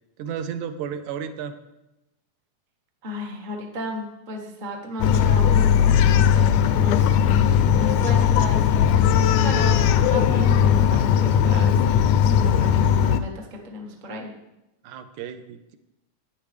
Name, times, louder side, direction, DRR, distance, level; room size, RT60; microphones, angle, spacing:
voice 1, 0.2-1.6 14.8-15.8, right 8 dB, 75° right, 9 dB, 2.0 m, -33 dB
voice 2, 3.0-6.0 6.3-9.0 9.4-14.3, equal, 55° right, 0 dB, 0.5 m, -34 dB
Bark, 5.0-13.2, left 8 dB, 80° left, 1.7 m, -18 dB
13.0 x 9.5 x 3.4 m, 0.93 s
omnidirectional pair, 3.6 m